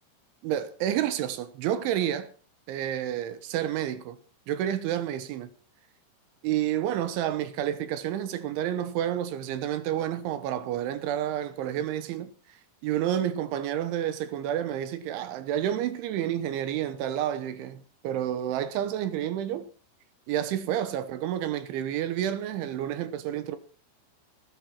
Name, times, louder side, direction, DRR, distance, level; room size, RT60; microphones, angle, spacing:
voice 1, 0.4-2.3 2.7-4.2 4.5-5.5 6.4-12.3 12.8-19.7 20.3-23.6, right 11 dB, 75° right, 3.3 m, -29 dB
19.5 x 13.0 x 4.5 m
omnidirectional pair, 5.9 m